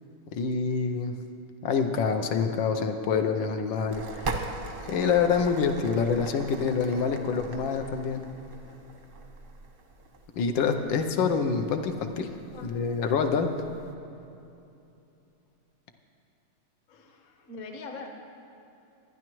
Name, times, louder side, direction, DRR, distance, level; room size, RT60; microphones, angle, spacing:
voice 1, 0.3-1.1 1.6-4.3 4.8-8.3 10.4-12.3 12.6-13.5, left 5 dB, 80° left, 5 dB, 1.5 m, -26 dB
sound 1, 3.9-13.9, right 3 dB, 50° right, 0.6 m, -41 dB
voice 2, 16.9-18.1, left 3 dB, 50° left, 4 dB, 1.2 m, -43 dB
24.0 x 9.7 x 3.0 m, 2.8 s
omnidirectional pair, 2.1 m